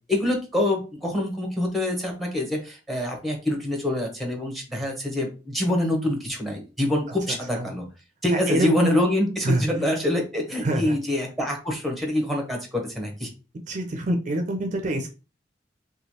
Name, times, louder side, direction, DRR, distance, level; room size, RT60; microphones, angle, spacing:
voice 1, 0.1-7.8 8.2-13.3, left 1 dB, ahead, 2 dB, 0.8 m, -25 dB
voice 2, 8.3-8.9 9.4-9.6 10.6-10.9 13.7-15.1, right 1 dB, 45° right, 4 dB, 0.4 m, -25 dB
3.0 x 2.3 x 2.7 m, 0.32 s
head